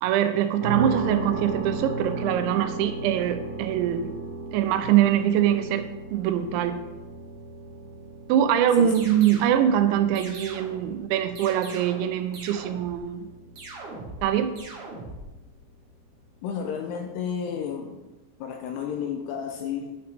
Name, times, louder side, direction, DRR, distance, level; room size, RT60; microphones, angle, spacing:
voice 1, 0.0-4.1 4.5-6.8 8.3-13.2 14.2-14.5, right 10 dB, 85° right, 9 dB, 2.9 m, -23 dB
sound 1, 0.6-16.5, right 3 dB, 50° right, 2.7 m, -36 dB
sound 2, 8.9-9.6 10.1-10.9 11.3-12.1 12.3-13.0 13.5-14.3 14.5-15.2, right 2 dB, 70° right, 1.4 m, -41 dB
voice 2, 16.4-18.0 18.4-20.0, left 7 dB, 85° left, 4 dB, 2.4 m, -32 dB
10.0 x 5.8 x 3.5 m, 1.1 s
omnidirectional pair, 5.2 m